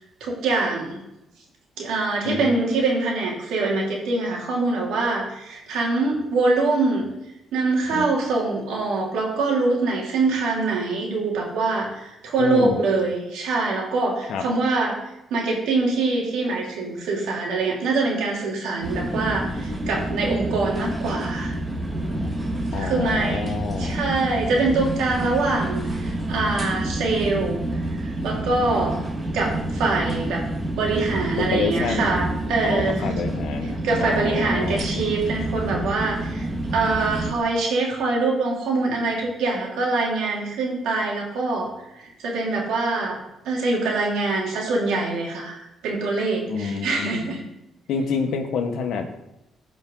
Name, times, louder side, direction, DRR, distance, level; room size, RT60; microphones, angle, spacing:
voice 1, 0.2-1.0 1.8-7.1 7.5-15.0 15.3-21.5 22.7-27.6 28.0-29.0 29.3-30.4 30.7-33.0 33.8-36.5 36.7-41.7 42.0-43.2 43.4-47.4, right 3 dB, 85° right, -2 dB, 2.7 m, -24 dB
voice 2, 12.4-12.8 14.3-14.4 22.7-24.0 31.4-32.1 32.6-34.9 46.5-47.2 47.9-49.1, left 5 dB, 80° left, 5 dB, 1.3 m, -27 dB
sound 1, 18.8-37.3, right 1 dB, 20° right, 1.7 m, -28 dB
15.5 x 5.3 x 3.9 m, 0.90 s
cardioid pair, 90°, 0 cm